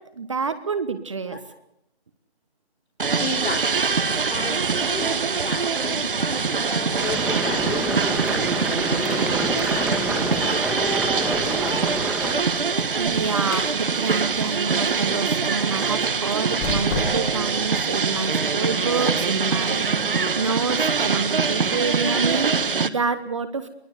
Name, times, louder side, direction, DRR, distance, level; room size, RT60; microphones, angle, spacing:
voice 1, 0.0-1.4 12.9-23.7, right 5 dB, 30° right, 11 dB, 1.1 m, -28 dB
voice 2, 3.0-3.7 4.2-11.7, left 3 dB, 75° left, 1 dB, 3.4 m, -35 dB
sound 1, 3.0-22.9, right 5 dB, 55° right, 1.4 m, -24 dB
sound 2, 7.0-12.3, right 2 dB, 5° right, 1.8 m, -27 dB
Squeak, 12.2-15.4 16.2-17.5, left 3 dB, 20° left, 2.4 m, -34 dB
22.5 x 19.0 x 8.0 m, 0.79 s
figure-of-eight pair, 165°, 32 cm